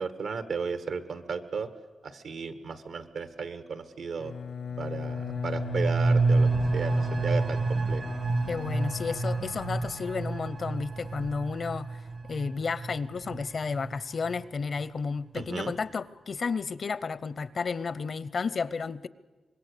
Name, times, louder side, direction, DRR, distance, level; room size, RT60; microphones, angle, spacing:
voice 1, 0.0-1.7 2.0-4.3 4.8-8.0 15.3-15.7, right 5 dB, 90° right, 9 dB, 1.4 m, -34 dB
sound 1, 3.0-14.1 15.1-15.2 15.5-15.8, right 4 dB, 65° right, 1.2 m, -48 dB
Bowed string instrument, 4.2-10.8, left 6 dB, 85° left, 0.9 m, -36 dB
sound 2, 5.0-14.4 14.8-14.9, right 3 dB, 50° right, 0.6 m, -29 dB
voice 2, 8.5-19.1, left 5 dB, 55° left, 18 dB, 0.6 m, -32 dB
25.0 x 21.0 x 6.7 m, 1.2 s
cardioid pair, 90°, 0 cm